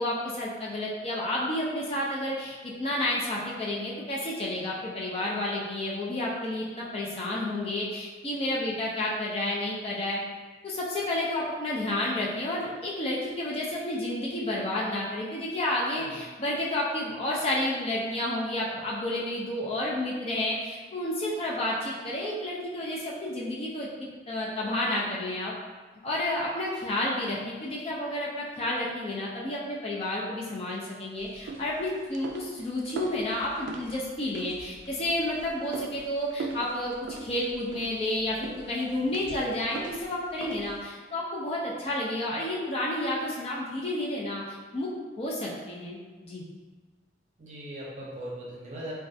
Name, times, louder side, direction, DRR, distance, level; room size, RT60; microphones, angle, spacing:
voice 1, 0.0-10.2 10.6-25.5 26.0-36.9 37.2-44.9 45.2-46.4, left 1 dB, 30° left, -5 dB, 0.4 m, -31 dB
sound 1, 31.2-40.9, right 3 dB, 75° right, 0.3 m, -41 dB
voice 2, 39.1-39.4 47.4-48.9, equal, 40° right, -5 dB, 0.7 m, -40 dB
3.1 x 2.3 x 2.6 m, 1.3 s
head